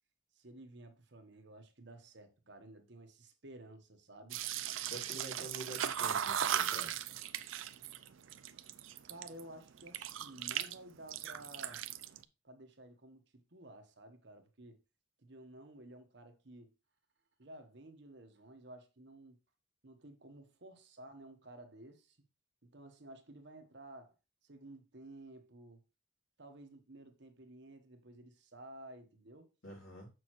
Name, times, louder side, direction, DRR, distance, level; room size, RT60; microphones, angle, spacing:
voice 1, 0.3-4.4 9.1-11.8 12.4-13.2 13.5-14.8 15.2-16.7 17.4-19.4 19.8-22.2 22.6-24.2 24.4-25.8 26.4-29.5, right 1 dB, 60° right, 1.2 m, -53 dB
sound 1, 4.3-9.4 9.8-10.8 11.0-12.2, right 10 dB, 75° right, 0.5 m, -37 dB
voice 2, 4.8-7.0 29.6-30.1, right 1 dB, 75° left, 3.3 m, -47 dB
7.0 x 6.3 x 3.1 m
head